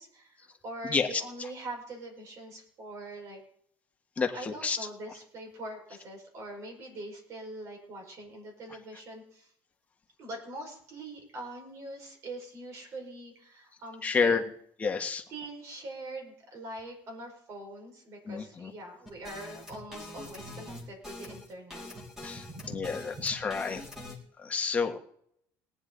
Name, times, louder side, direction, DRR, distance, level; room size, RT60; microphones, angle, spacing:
voice 1, 0.0-3.4 4.3-9.5 10.2-14.5 15.3-21.8 22.2-23.3, right 1 dB, 45° right, 2 dB, 5.3 m, -43 dB
voice 2, 0.9-1.2 4.2-4.8 14.0-14.4 14.8-15.2 18.3-18.7 22.2-22.4 22.7-23.8 24.4-25.0, left 5 dB, 20° left, 3 dB, 1.5 m, -29 dB
sound 1, 19.0-24.2, left 1 dB, 5° right, 3.1 m, -44 dB
19.0 x 10.0 x 4.0 m, 0.67 s
cardioid pair, 145°, 7 cm